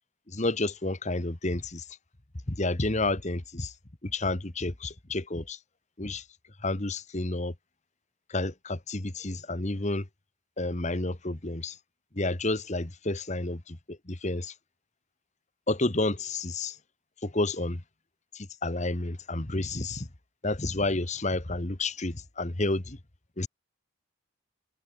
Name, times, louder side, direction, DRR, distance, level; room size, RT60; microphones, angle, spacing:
voice 1, 0.3-1.8 2.5-3.7 4.0-5.6 6.0-6.2 6.6-7.5 8.3-10.1 10.6-11.8 12.1-14.5 15.7-16.8 17.2-17.8 18.3-20.1 20.4-23.0 23.4-23.5, left 2 dB, 35° left, 1.4 m, -30 dB
head